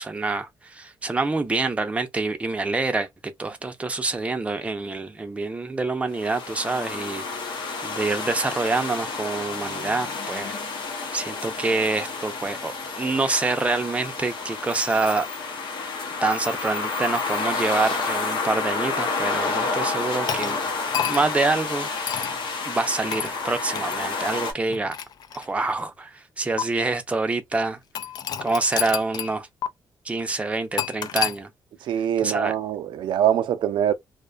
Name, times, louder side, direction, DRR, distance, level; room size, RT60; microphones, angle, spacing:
voice 1, 0.0-3.1 3.4-7.4 7.8-10.6 11.1-15.3 16.2-20.6 21.1-21.9 22.6-24.9 25.3-27.8 28.4-29.5 30.0-31.5 32.2-32.6, right 3 dB, 15° right, 0.5 m, -26 dB
sound 1, 6.1-24.5, left 4 dB, 80° left, 0.8 m, -30 dB
sound 2, 20.3-21.4 22.1-22.4 23.1-23.3 23.8-24.0 24.7-25.8 26.6-26.7 28.0-29.4 29.6-29.7 30.8-31.4, left 9 dB, 55° left, 0.3 m, -29 dB
voice 2, 31.9-33.9, right 10 dB, 80° right, 0.4 m, -23 dB
2.5 x 2.1 x 2.4 m
wide cardioid pair, 155°, 8 cm